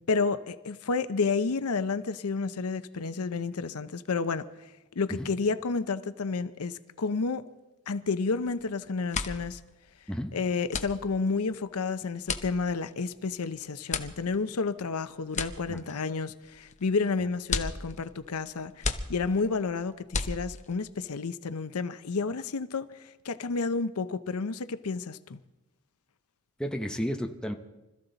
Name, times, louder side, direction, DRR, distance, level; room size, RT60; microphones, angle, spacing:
voice 1, 0.1-7.4 7.9-9.6 10.3-25.4, left 4 dB, 75° left, 0.7 m, -31 dB
sound 1, 8.4-8.7 9.0-20.9, left 4 dB, 35° left, 0.9 m, -36 dB
voice 2, 26.6-27.5, equal, 5° left, 0.9 m, -32 dB
25.5 x 14.0 x 4.0 m
head